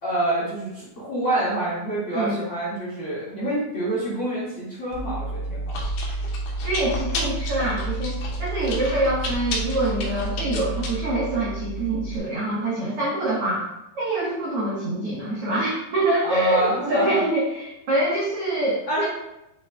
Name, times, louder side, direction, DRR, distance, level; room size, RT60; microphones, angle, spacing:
voice 1, 0.0-5.7 16.2-17.2 18.9-19.1, right 1 dB, 35° left, -8 dB, 2.0 m, -27 dB
Chewing mastication, 4.9-12.2, right 1 dB, 65° left, 2.3 m, -29 dB
voice 2, 6.6-13.7 13.9-19.0, right 1 dB, 80° right, -6 dB, 1.3 m, -25 dB
8.0 x 6.0 x 2.3 m, 0.86 s
omnidirectional pair, 4.8 m